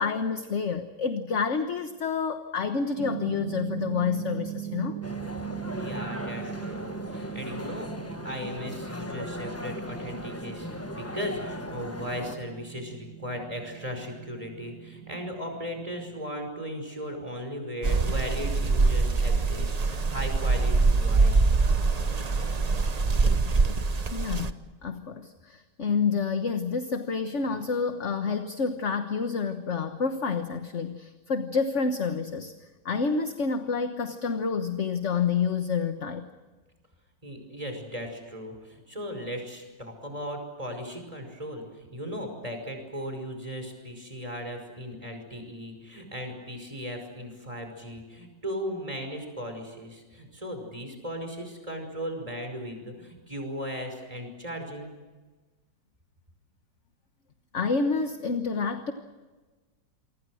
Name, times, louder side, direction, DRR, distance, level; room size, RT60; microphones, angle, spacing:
voice 1, 0.0-5.0 24.1-24.5 24.8-32.5 32.8-36.3 57.5-58.9, left 5 dB, 45° left, 7 dB, 1.4 m, -28 dB
sound 1, 3.0-16.2, right 13 dB, 65° right, 1.6 m, -40 dB
sound 2, 5.0-12.4, left 1 dB, 10° left, 0.9 m, -38 dB
voice 2, 5.7-21.5 37.2-54.9, equal, 15° right, 4 dB, 5.6 m, -37 dB
sound 3, 17.8-24.5, right 3 dB, 35° right, 0.6 m, -24 dB
28.0 x 24.5 x 6.4 m, 1.3 s
omnidirectional pair, 2.0 m